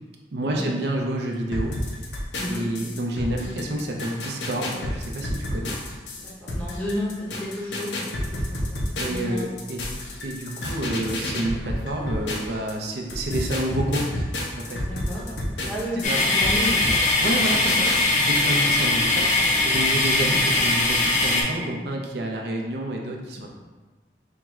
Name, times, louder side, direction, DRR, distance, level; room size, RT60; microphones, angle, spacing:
voice 1, 0.3-1.7 2.5-5.8 9.0-9.9 10.2-14.0 14.6-14.8 15.3-15.4 15.9-16.4 17.2-17.9 18.1-19.3 19.6-23.5, right 1 dB, 65° right, 0 dB, 0.5 m, -29 dB
sound 1, 1.5-12.7 13.1-18.0, left 1 dB, 80° left, 0.6 m, -30 dB
voice 2, 6.2-9.4 14.9-15.3 15.6-17.0 19.9-20.1, equal, 5° left, -7 dB, 0.7 m, -32 dB
sound 2, 16.0-21.4, left 2 dB, 45° left, 0.6 m, -21 dB
4.4 x 2.4 x 3.0 m, 1.2 s
head